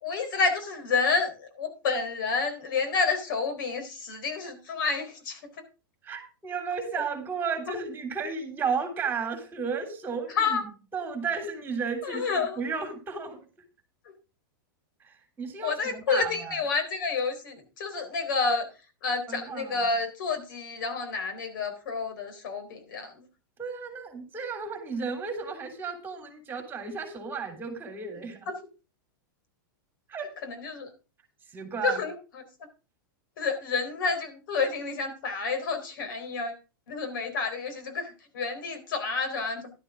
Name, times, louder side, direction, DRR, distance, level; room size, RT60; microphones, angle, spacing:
voice 1, 0.0-5.6 10.3-10.6 12.0-12.6 14.0-14.1 15.6-18.7 19.0-23.3 28.5-28.6 30.4-30.9 31.8-32.4 33.4-36.6 36.9-39.7, left 4 dB, 65° left, 7 dB, 3.9 m, -29 dB
voice 2, 6.0-10.6 10.9-13.4 15.0-16.5 19.3-19.8 23.6-28.5 30.1-30.3 31.5-32.0, right 5 dB, 20° right, 6 dB, 3.1 m, -33 dB
11.5 x 11.0 x 3.7 m, 0.32 s
hypercardioid pair, 130°, 12 cm